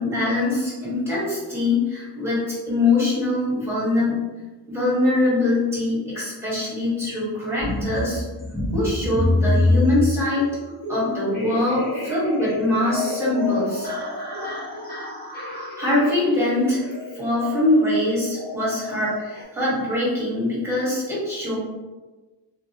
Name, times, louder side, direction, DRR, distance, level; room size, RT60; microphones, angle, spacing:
voice 1, 0.0-4.1 4.7-8.2 8.7-10.5 10.9-13.9 15.8-16.8 17.1-21.6, left 2 dB, 5° right, -8 dB, 1.3 m, -23 dB
sound 1, 7.6-19.4, left 2 dB, 20° left, 1.0 m, -27 dB
2.3 x 2.2 x 2.7 m, 1.2 s
wide cardioid pair, 95°, 45 cm